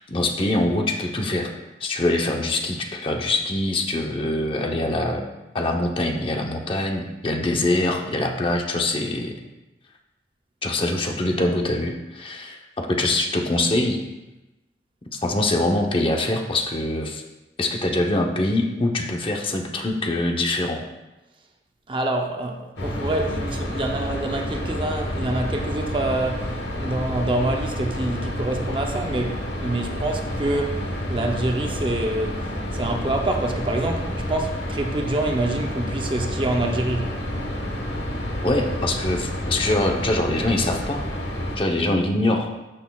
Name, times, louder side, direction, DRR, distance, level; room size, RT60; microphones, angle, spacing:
voice 1, 0.0-1.5 1.8-5.2 5.5-9.4 10.6-14.0 15.1-17.2 17.6-20.8 38.4-41.0 41.6-42.5, left 2 dB, 30° left, 0.8 m, -24 dB
voice 2, 21.9-30.8 31.1-32.4 32.7-37.1, right 2 dB, 30° right, 0.6 m, -26 dB
sound 1, 22.8-41.6, equal, 75° left, 1.3 m, -29 dB
13.0 x 6.3 x 2.3 m
head